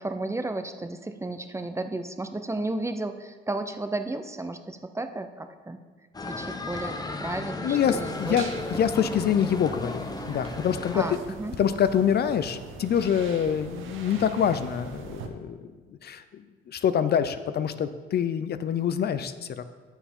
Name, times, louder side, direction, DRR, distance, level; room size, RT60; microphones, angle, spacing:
voice 1, 0.0-5.8 6.2-6.9 7.2-8.5 10.9-11.6, right 2 dB, 15° right, 8 dB, 0.6 m, -33 dB
sound 1, 6.1-11.2, left 2 dB, 20° left, 0.8 m, -35 dB
voice 2, 7.6-11.0 11.6-15.7 16.0-19.6, left 8 dB, 55° left, 12 dB, 0.5 m, -26 dB
sound 2, 7.7-15.3, right 5 dB, 85° right, 1.0 m, -42 dB
9.0 x 7.1 x 5.4 m, 1.4 s
cardioid pair, 90°, 20 cm